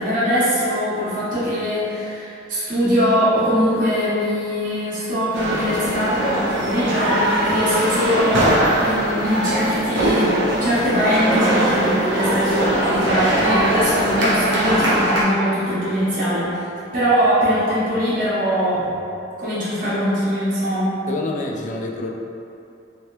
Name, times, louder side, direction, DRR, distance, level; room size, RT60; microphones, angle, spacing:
voice 1, 0.0-8.5 8.8-16.5 16.9-18.9 19.4-21.0, equal, 45° right, -11 dB, 0.9 m, -21 dB
sound 1, 5.3-15.2, right 1 dB, 75° right, 0.7 m, -21 dB
voice 2, 21.1-22.1, left 2 dB, 40° left, 1 dB, 0.3 m, -27 dB
3.0 x 2.7 x 3.0 m, 2.7 s
head